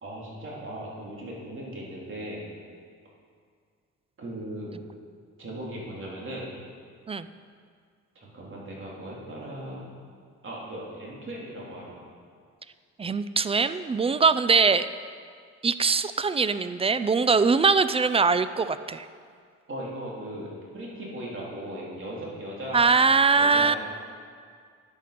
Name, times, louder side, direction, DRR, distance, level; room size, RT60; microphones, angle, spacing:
voice 1, 0.0-2.4 4.2-4.8 5.4-6.5 8.1-9.8 10.4-12.0 19.7-23.0 23.3-23.8, right 1 dB, 40° right, -4 dB, 3.4 m, -38 dB
voice 2, 13.0-14.9 15.6-19.1 22.7-23.8, right 4 dB, 20° right, 13 dB, 0.4 m, -22 dB
10.0 x 8.5 x 5.8 m, 2.1 s
cardioid pair, 90°, 30 cm